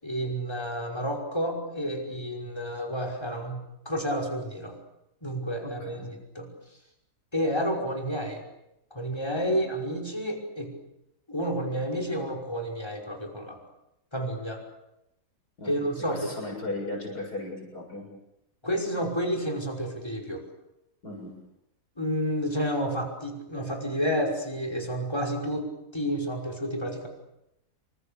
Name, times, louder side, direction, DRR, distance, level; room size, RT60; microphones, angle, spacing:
voice 1, 0.0-3.6 3.9-4.7 5.2-6.0 6.3-6.5 7.3-8.4 8.9-10.7 11.3-13.6 14.1-14.6 15.7-16.3 18.6-20.4 22.0-27.1, equal, 15° left, 3 dB, 5.6 m, -30 dB
voice 2, 5.6-6.1 9.5-9.6 15.6-15.7 16.1-18.1 21.0-21.3, left 2 dB, 75° left, 1 dB, 8.0 m, -36 dB
27.5 x 25.5 x 6.8 m, 0.86 s
omnidirectional pair, 1.7 m